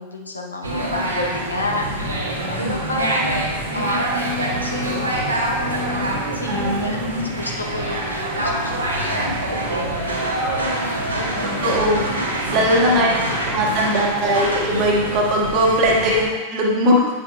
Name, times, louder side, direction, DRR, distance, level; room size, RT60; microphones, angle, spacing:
voice 1, 0.0-1.8 2.6-5.9 6.3-11.8 12.7-13.2 13.7-14.2 15.5-15.6 15.9-16.1, left 2 dB, 80° left, -1 dB, 0.9 m, -31 dB
sound 1, 0.6-16.2, right 1 dB, 80° right, 1.5 m, -25 dB
voice 2, 6.5-7.3 11.6-12.0 12.5-13.1 13.5-17.1, equal, 40° right, -2 dB, 1.5 m, -19 dB
9.0 x 6.6 x 2.3 m, 1.3 s
figure-of-eight pair, 90°, 0 cm